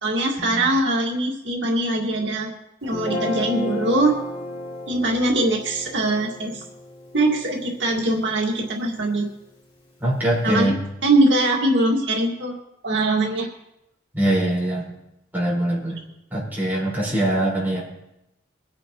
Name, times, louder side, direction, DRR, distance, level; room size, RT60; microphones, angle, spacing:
voice 1, 0.0-2.5 2.8-4.2 4.9-6.6 7.1-9.3 10.4-10.7 11.0-12.6 12.8-13.5, right 2 dB, 80° right, -1 dB, 2.0 m, -22 dB
Guitar, 2.8-9.2, left 1 dB, 30° left, 2.5 m, -34 dB
voice 2, 10.0-10.7 14.1-14.8 15.3-16.0 16.3-17.8, right 1 dB, 10° right, -7 dB, 5.0 m, -22 dB
23.5 x 9.8 x 3.0 m, 0.89 s
head